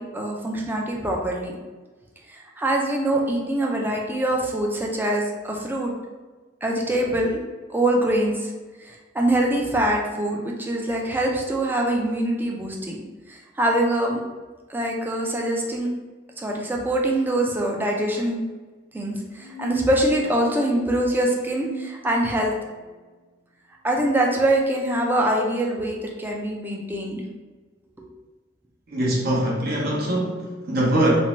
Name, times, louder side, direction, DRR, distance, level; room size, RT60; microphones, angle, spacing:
voice 1, 0.0-1.6 2.3-5.9 6.6-7.4 7.7-8.5 8.8-13.0 13.3-14.2 14.7-15.9 16.4-18.4 18.9-22.5 23.8-27.2, right 1 dB, 10° right, -1 dB, 0.3 m, -24 dB
sound 1, 19.3-22.7, right 4 dB, 90° left, 0.5 m, -36 dB
voice 2, 28.9-31.1, right 1 dB, 55° right, -3 dB, 0.7 m, -23 dB
2.6 x 2.1 x 2.9 m, 1.3 s
head